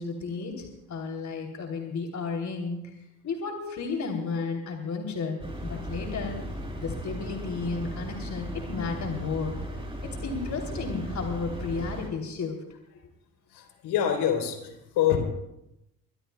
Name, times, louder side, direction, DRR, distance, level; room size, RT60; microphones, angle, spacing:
voice 1, 0.0-2.9 3.2-6.4 6.8-9.6 10.0-12.6, left 4 dB, 40° left, 2 dB, 3.0 m, -33 dB
sound 1, 5.4-12.1, equal, 10° right, 7.8 m, -36 dB
voice 2, 13.5-15.2, left 10 dB, 65° left, 4 dB, 3.6 m, -26 dB
23.5 x 21.5 x 2.3 m, 0.87 s
hypercardioid pair, 55°, 42 cm